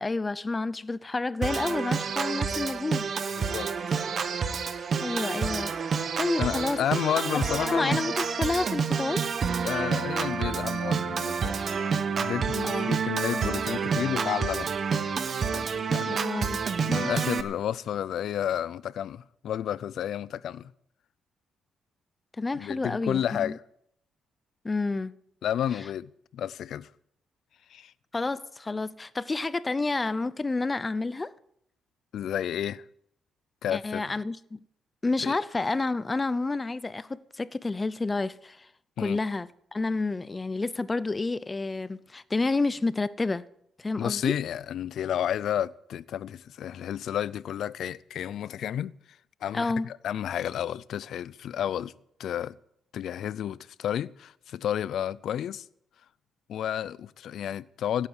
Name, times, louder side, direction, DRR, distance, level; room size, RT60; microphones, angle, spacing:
voice 1, 0.0-3.1 5.0-6.8 7.3-9.2 12.6-13.0 15.8-16.6 22.4-23.6 24.6-25.1 28.1-31.3 33.7-34.6 35.0-38.7 39.0-43.4 43.8-44.3 49.5-49.9, left 3 dB, 25° left, 0.7 m, -30 dB
Organ, 1.4-17.4, right 6 dB, 50° right, 1.3 m, -29 dB
voice 2, 3.4-3.7 4.8-4.9 6.4-8.0 9.6-11.6 12.2-14.7 15.5-15.6 15.9-16.2 16.9-20.7 22.5-23.6 25.4-26.9 27.7-27.9 32.1-32.8 33.6-34.0 35.2-35.4 39.0-39.2 44.0-48.9 49.4-51.9 52.2-52.6 52.9-55.6 56.5-58.1, left 10 dB, 70° left, 0.5 m, -31 dB
16.5 x 9.0 x 8.0 m
cardioid pair, 90°, 0 cm